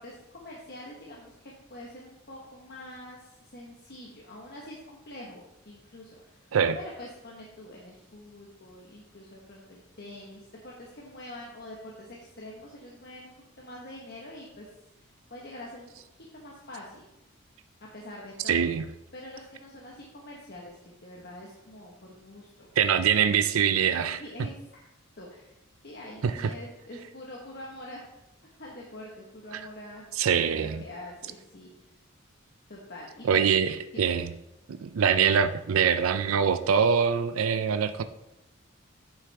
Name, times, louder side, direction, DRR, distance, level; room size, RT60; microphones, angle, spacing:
voice 1, 0.0-6.4 6.7-14.7 15.3-15.9 16.3-17.0 17.9-18.7 19.1-22.7 23.0-23.1 24.0-24.8 25.2-25.5 25.8-28.1 28.6-30.0 30.5-31.7 32.7-33.5 33.9-34.1, left 1 dB, 50° left, -3 dB, 1.3 m, -45 dB
voice 2, 18.5-18.9 22.8-24.2 26.2-26.5 30.2-30.8 33.2-34.3 34.8-38.0, right 7 dB, 80° right, 11 dB, 0.4 m, -24 dB
9.5 x 6.5 x 3.5 m, 0.88 s
head